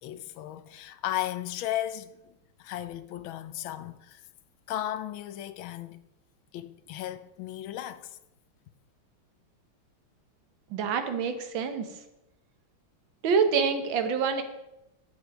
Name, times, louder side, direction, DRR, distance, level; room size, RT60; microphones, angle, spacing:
voice 1, 0.0-2.3 2.6-4.2 4.7-6.0 6.5-8.2, left 13 dB, 75° left, 1.3 m, -35 dB
voice 2, 10.7-11.9 13.2-14.4, right 6 dB, 70° right, 1.8 m, -26 dB
10.5 x 8.2 x 5.1 m
omnidirectional pair, 2.3 m